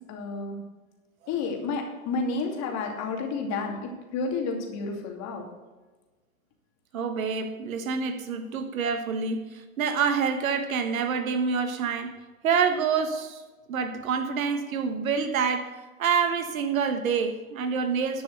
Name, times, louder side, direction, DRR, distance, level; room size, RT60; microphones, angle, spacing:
voice 1, 0.1-0.6 1.3-5.5, left 4 dB, 40° left, 2.6 m, -31 dB
voice 2, 6.9-12.1 12.4-13.4 13.7-15.7 16.0-18.2, right 6 dB, 75° right, 1.4 m, -27 dB
11.5 x 6.0 x 6.5 m
hypercardioid pair, 110°, 41 cm